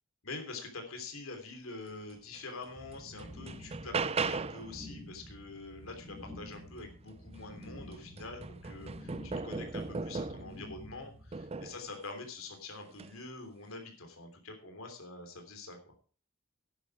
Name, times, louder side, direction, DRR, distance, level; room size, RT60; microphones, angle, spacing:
voice 1, 0.2-15.9, left 3 dB, 80° left, 5 dB, 3.3 m, -45 dB
sound 1, 2.3-2.4 2.9-4.7 7.1-7.2 7.6-10.6 11.3-11.9 12.9-13.1, right 4 dB, 30° right, 0.5 m, -37 dB
sound 2, 2.7-11.3, left 1 dB, 10° right, 2.7 m, -50 dB
10.5 x 9.7 x 4.9 m, 0.40 s
head